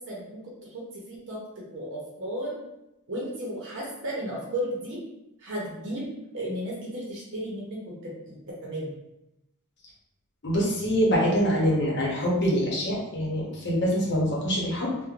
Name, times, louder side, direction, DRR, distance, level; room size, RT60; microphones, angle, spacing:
voice 1, 0.0-1.4 1.7-2.6 3.1-5.0 5.4-6.1 6.3-8.4 8.6-8.9, equal, 60° right, -4 dB, 0.7 m, -34 dB
voice 2, 10.4-14.9, equal, 55° left, -4 dB, 0.8 m, -25 dB
3.0 x 2.1 x 2.4 m, 0.87 s
head